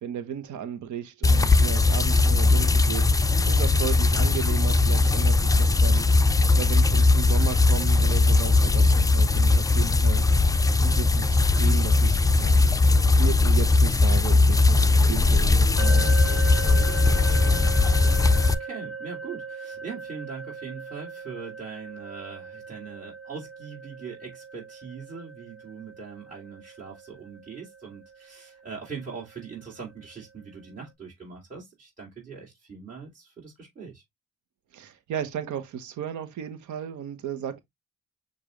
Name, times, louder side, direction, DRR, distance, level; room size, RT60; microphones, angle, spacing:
voice 1, 0.0-6.1 6.6-10.2 10.8-12.6 13.2-16.1 34.7-37.6, right 9 dB, 75° right, 1.0 m, -35 dB
sound 1, 1.2-18.5, left 3 dB, 10° left, 0.4 m, -19 dB
voice 2, 2.2-2.6 17.4-34.0, right 5 dB, 25° right, 2.6 m, -41 dB
sound 2, 15.8-29.6, right 4 dB, 55° right, 1.8 m, -39 dB
6.7 x 2.6 x 3.0 m
cardioid pair, 90°, 30 cm